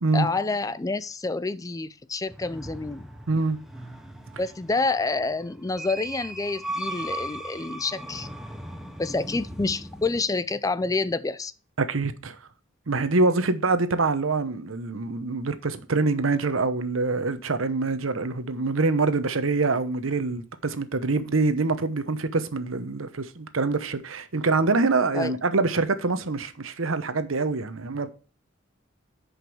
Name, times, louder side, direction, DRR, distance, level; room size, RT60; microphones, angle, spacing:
voice 1, 0.1-3.1 4.4-8.3 9.0-11.5 25.1-25.3, left 3 dB, 15° left, 0.4 m, -28 dB
sound 1, 2.3-10.2, right 1 dB, ahead, 0.9 m, -38 dB
voice 2, 3.3-3.6 11.8-12.4 12.9-28.1, right 3 dB, 85° right, 0.9 m, -25 dB
10.0 x 5.3 x 4.6 m
head